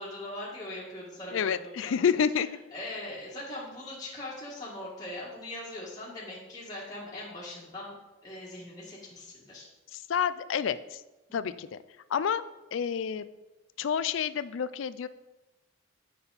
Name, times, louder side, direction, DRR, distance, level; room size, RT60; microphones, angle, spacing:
voice 1, 0.0-1.9 2.7-8.0 8.2-9.7 11.4-11.5, left 1 dB, 20° left, -7 dB, 1.5 m, -41 dB
voice 2, 1.3-2.5 9.9-11.0 11.3-11.8 12.1-12.4 12.7-13.3 13.8-15.1, left 7 dB, 65° left, 14 dB, 0.3 m, -29 dB
7.7 x 5.8 x 4.0 m, 1.0 s
head